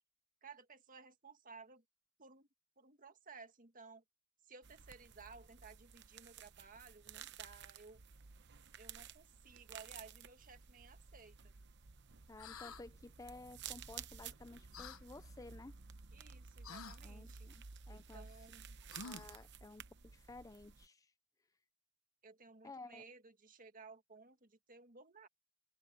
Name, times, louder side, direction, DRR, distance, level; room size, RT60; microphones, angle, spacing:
voice 1, 0.4-1.8 2.2-2.5 2.8-4.0 4.4-8.0 8.8-11.5 16.1-17.5 17.9-18.8 22.2-25.3, right 4 dB, 40° right, 1.7 m, -57 dB
sound 1, 4.6-20.9, right 7 dB, 55° right, 0.9 m, -54 dB
voice 2, 12.3-15.8 17.0-18.3 19.0-21.1 22.6-23.0, left 2 dB, 15° left, 0.4 m, -54 dB
sound 2, 12.4-12.8 14.7-15.0 16.6-17.0 18.9-19.4, left 5 dB, 80° left, 1.2 m, -49 dB
open air
head